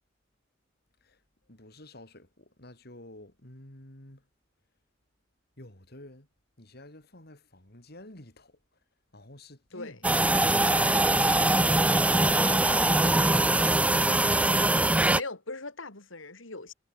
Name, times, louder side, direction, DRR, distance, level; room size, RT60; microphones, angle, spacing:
voice 1, 1.5-4.2 5.6-6.3 6.6-8.5 9.1-10.5, left 1 dB, 55° left, 5.1 m, -49 dB
voice 2, 9.7-10.0 15.1-16.7, left 3 dB, 90° left, 4.0 m, -40 dB
sound 1, 10.0-15.2, right 2 dB, 5° right, 0.7 m, -22 dB
head